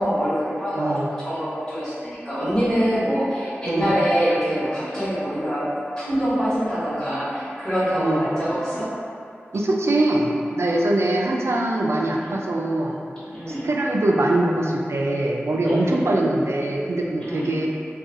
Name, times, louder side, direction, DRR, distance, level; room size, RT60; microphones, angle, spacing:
voice 1, 0.0-0.9 1.2-5.7 6.0-8.9 12.2-12.4 13.3-13.7 15.6-16.0 17.2-17.5, equal, 25° left, -13 dB, 1.2 m, -24 dB
voice 2, 0.8-1.1 3.7-3.9 8.0-8.3 9.5-10.3 10.6-13.0 13.5-17.7, right 1 dB, 75° right, -1 dB, 0.4 m, -22 dB
2.6 x 2.3 x 3.7 m, 2.5 s
wide cardioid pair, 70°, 5 cm